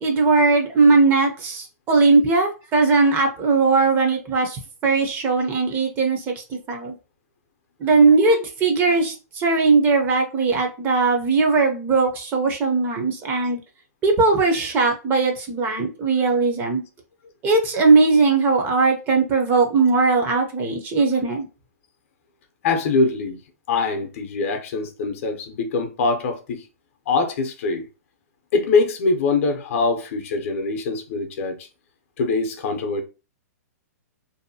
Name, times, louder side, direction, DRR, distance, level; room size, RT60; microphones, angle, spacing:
voice 1, 0.0-6.9 7.8-13.6 14.0-16.8 17.4-21.5, right 4 dB, 20° right, 0.5 m, -19 dB
voice 2, 22.6-23.4 23.7-26.6 27.1-27.9 28.5-31.7 32.2-33.0, left 3 dB, 50° left, 0.6 m, -23 dB
2.6 x 2.2 x 2.6 m
hypercardioid pair, 145°, 9 cm